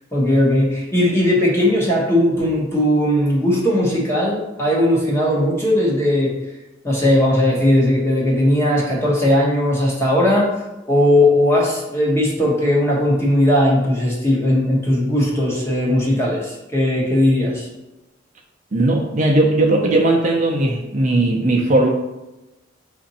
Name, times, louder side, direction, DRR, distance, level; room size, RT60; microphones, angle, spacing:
voice 1, 0.1-6.3 6.8-10.5 10.8-17.7, left 1 dB, 15° left, -4 dB, 1.1 m, -18 dB
voice 2, 18.7-21.9, right 2 dB, 40° right, -1 dB, 0.5 m, -17 dB
5.0 x 2.6 x 4.0 m, 1.0 s
head